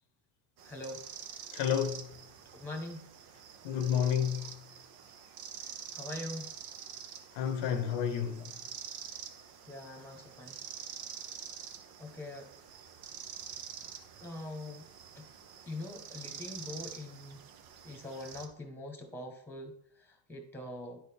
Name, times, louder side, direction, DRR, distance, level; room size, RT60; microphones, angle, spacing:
voice 1, 0.6-1.0 2.5-3.1 5.9-6.5 9.7-10.6 12.0-12.5 14.2-14.8 15.1-15.3 15.6-17.4 17.8-21.0, left 1 dB, 5° left, 1.4 m, -43 dB
sound 1, 0.6-18.5, right 8 dB, 50° right, 0.9 m, -47 dB
voice 2, 1.5-2.1 3.6-4.5 7.3-8.5, left 8 dB, 65° left, 0.9 m, -30 dB
10.5 x 4.2 x 3.6 m
supercardioid pair, 115°, 47 cm